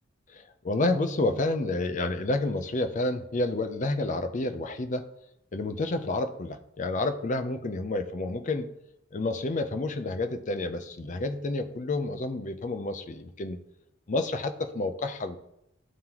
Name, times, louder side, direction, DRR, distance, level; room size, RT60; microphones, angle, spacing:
voice 1, 0.3-5.0 5.5-8.7 9.1-13.6 14.1-15.4, left 2 dB, 40° left, 9 dB, 0.5 m, -29 dB
11.0 x 3.8 x 2.9 m, 0.80 s
head